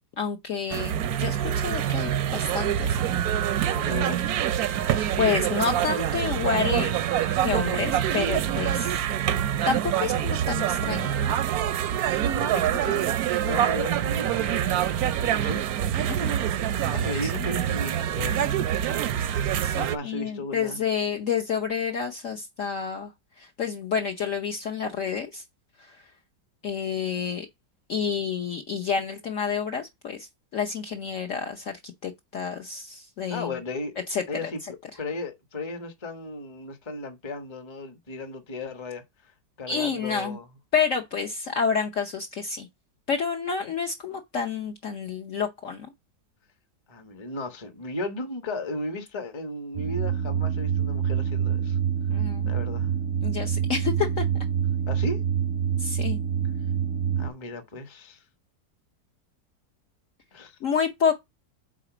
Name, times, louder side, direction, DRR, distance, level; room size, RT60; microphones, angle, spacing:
voice 1, 0.2-3.1 5.2-7.0 7.4-9.0 9.6-11.3 16.1-16.3 17.2-17.5 19.6-23.1 23.4-25.4 26.6-27.5 27.9-33.5 34.1-34.5 39.7-40.4 40.7-42.7 43.1-45.9 52.1-52.5 53.2-54.3 55.8-56.2 60.6-61.2, left 6 dB, 55° left, 0.9 m, -29 dB
sound 1, 0.7-20.0, right 10 dB, 70° right, 1.0 m, -25 dB
voice 2, 3.7-4.4 12.3-13.2 13.4-14.9 15.2-15.6 16.9-18.5 19.7-20.8 33.3-34.0 34.3-34.6 35.0-39.3 39.6-40.5 46.9-51.8 52.4-52.9 54.9-55.2 57.2-58.2 60.3-60.6, left 2 dB, 20° left, 0.8 m, -35 dB
sound 2, 49.7-57.3, right 8 dB, 30° right, 0.4 m, -26 dB
4.9 x 4.1 x 5.9 m
omnidirectional pair, 1.9 m